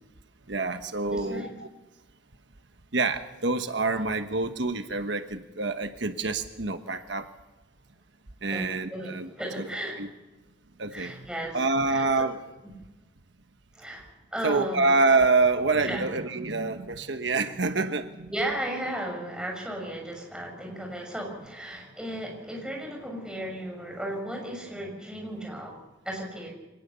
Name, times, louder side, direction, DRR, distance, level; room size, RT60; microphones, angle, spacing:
voice 1, 0.5-1.7 2.9-7.3 8.4-9.3 9.6-9.7 10.0-10.1 10.8-11.3 11.5-12.4 14.4-18.3, right 3 dB, 75° right, 8 dB, 1.2 m, -26 dB
voice 2, 1.1-1.5 8.5-10.0 10.9-12.0 13.7-14.9 15.8-16.1 18.3-25.7 26.0-26.5, right 1 dB, 5° right, 0 dB, 6.2 m, -35 dB
24.5 x 19.5 x 6.9 m, 1.1 s
head